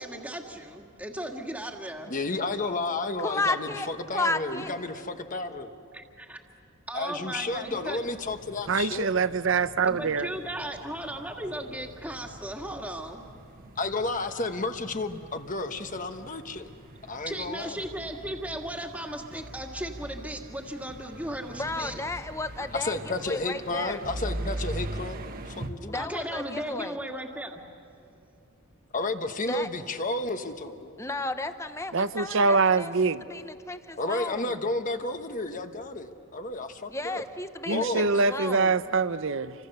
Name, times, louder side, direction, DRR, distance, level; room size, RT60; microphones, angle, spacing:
voice 1, 0.0-2.1 5.9-6.4 6.9-8.1 9.9-13.2 17.3-22.0 25.9-27.6, right 1 dB, 5° right, 2 dB, 1.9 m, -36 dB
voice 2, 2.1-5.7 6.9-9.1 13.8-16.7 17.1-17.8 22.7-26.0 28.9-30.9 34.0-37.2 37.7-38.1, left 2 dB, 35° left, 7 dB, 1.2 m, -32 dB
voice 3, 3.2-4.7 21.5-23.0 23.3-24.0 25.8-27.0 29.5-29.7 31.0-34.6 36.9-38.7, left 2 dB, 15° left, 9 dB, 0.9 m, -33 dB
sound 1, 7.5-25.7, right 1 dB, 40° right, 1.3 m, -42 dB
voice 4, 8.7-10.3 31.9-33.2 37.7-39.5, right 4 dB, 60° right, 14 dB, 0.7 m, -24 dB
29.5 x 25.5 x 6.7 m, 2.5 s
head